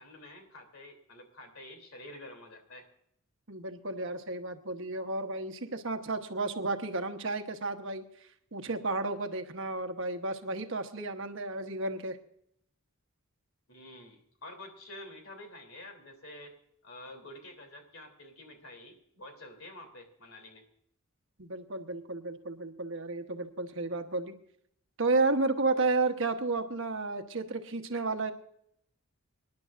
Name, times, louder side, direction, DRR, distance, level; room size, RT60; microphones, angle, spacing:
voice 1, 0.0-2.9 13.7-16.5 16.8-20.6, left 1 dB, 65° left, 5 dB, 3.2 m, -48 dB
voice 2, 3.5-8.0 8.5-12.2 21.4-24.3 25.0-28.3, right 3 dB, 60° right, 6 dB, 1.1 m, -32 dB
26.0 x 10.5 x 2.5 m, 0.69 s
head